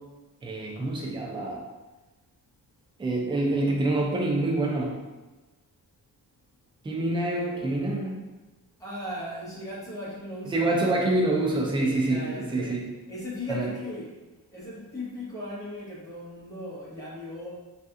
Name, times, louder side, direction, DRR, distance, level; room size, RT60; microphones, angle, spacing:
voice 1, 0.4-1.6 3.0-5.0 6.8-8.1 10.5-12.9, right 2 dB, 15° right, -1 dB, 0.3 m, -26 dB
voice 2, 7.3-8.1 8.8-10.7 11.7-12.8 13.1-14.1 14.5-17.5, left 1 dB, 10° left, -8 dB, 0.9 m, -37 dB
3.2 x 2.8 x 2.4 m, 1.1 s
wide cardioid pair, 170°, 38 cm